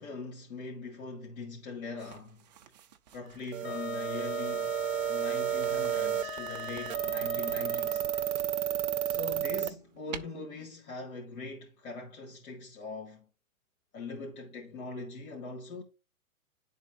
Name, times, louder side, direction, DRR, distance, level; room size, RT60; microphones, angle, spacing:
voice 1, 0.0-2.4 3.1-4.8 5.1-8.0 9.1-13.2 13.9-15.8, left 3 dB, 75° left, 2.3 m, -41 dB
sound 1, 2.0-3.9 5.3-6.7 7.4-8.7 9.1-10.2, right 9 dB, 30° right, 0.4 m, -50 dB
sound 2, 3.5-9.7, right 11 dB, 60° right, 0.7 m, -32 dB
Wind instrument woodwind instrument, 3.6-8.3, left 13 dB, 45° left, 0.4 m, -42 dB
11.0 x 4.0 x 2.6 m
hypercardioid pair, 150°, 44 cm